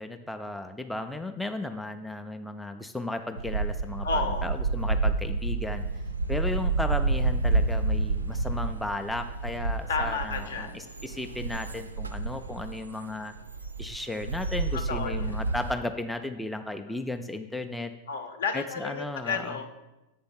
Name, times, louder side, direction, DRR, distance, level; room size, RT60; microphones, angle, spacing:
voice 1, 0.0-5.8 6.3-13.3 13.8-17.9 18.5-19.6, left 1 dB, 5° left, 6 dB, 0.3 m, -35 dB
sound 1, 3.4-15.7, right 3 dB, 75° right, 0.3 m, -29 dB
voice 2, 4.0-4.5 9.9-10.7 14.7-15.4 16.9-17.0 18.1-19.7, left 5 dB, 60° left, 7 dB, 0.7 m, -32 dB
8.2 x 3.4 x 5.6 m, 1.0 s
figure-of-eight pair, 90°, 0 cm